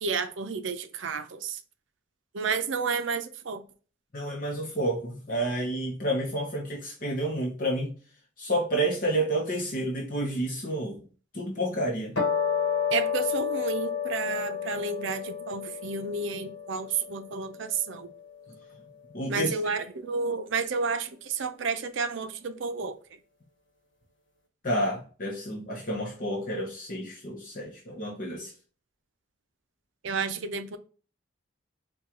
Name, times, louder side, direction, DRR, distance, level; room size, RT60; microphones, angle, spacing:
voice 1, 0.0-1.6 2.3-3.6 12.9-18.1 19.3-23.0 30.0-30.8, right 5 dB, 70° right, 0.5 m, -31 dB
voice 2, 4.1-7.9 8.4-11.0 11.3-12.1 18.5-18.6 19.1-19.7 24.6-28.5, right 1 dB, 40° left, 0.7 m, -30 dB
sound 1, 12.2-18.7, left 7 dB, 70° left, 1.1 m, -31 dB
4.5 x 2.3 x 3.7 m
head